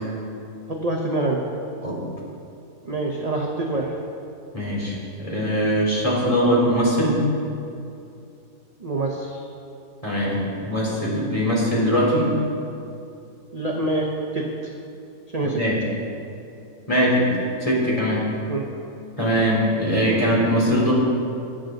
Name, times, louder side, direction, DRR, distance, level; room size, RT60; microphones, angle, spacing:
voice 1, 0.7-1.4 2.8-3.9 8.8-9.5 13.5-14.1 14.3-14.5 15.3-15.6 18.5-18.7, right 2 dB, 30° right, -1 dB, 1.0 m, -25 dB
voice 2, 4.5-7.2 10.0-12.3 15.4-15.8 16.9-17.3 17.6-18.3 19.2-20.9, equal, 20° left, -5 dB, 3.5 m, -21 dB
22.5 x 8.1 x 3.9 m, 2.6 s
omnidirectional pair, 1.6 m